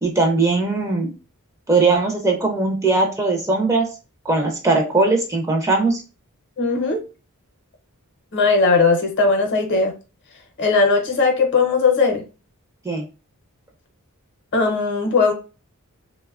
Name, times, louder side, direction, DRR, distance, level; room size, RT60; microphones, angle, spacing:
voice 1, 0.0-1.1 1.7-3.9 4.3-6.0 12.8-13.0, right 3 dB, 15° right, 1 dB, 0.4 m, -19 dB
voice 2, 6.6-7.0 8.3-9.9 10.6-12.2 14.5-15.3, left 4 dB, 50° left, 3 dB, 0.6 m, -18 dB
2.9 x 2.1 x 2.3 m, 0.32 s
head